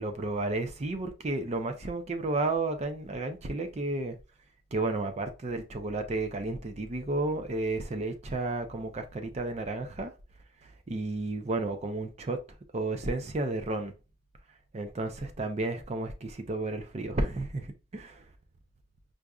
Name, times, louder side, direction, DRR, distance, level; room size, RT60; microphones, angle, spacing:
voice 1, 0.0-4.1 4.7-10.1 10.9-12.4 12.7-13.9 14.7-18.2, right 2 dB, 35° right, 0.5 m, -32 dB
4.7 x 2.6 x 2.2 m
head